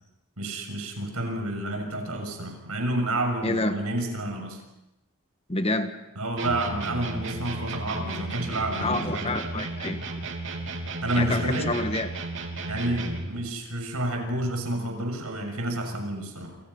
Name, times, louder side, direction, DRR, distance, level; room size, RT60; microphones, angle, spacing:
voice 1, 0.4-4.6 6.1-9.3 11.0-11.7 12.7-16.6, right 1 dB, 90° right, 4 dB, 6.5 m, -29 dB
voice 2, 3.4-3.8 5.5-5.9 8.8-10.0 11.1-12.1, left 2 dB, 25° left, 8 dB, 1.6 m, -27 dB
sound 1, 6.4-13.4, right 2 dB, 55° right, 3.4 m, -34 dB
28.5 x 28.5 x 5.6 m, 0.90 s
head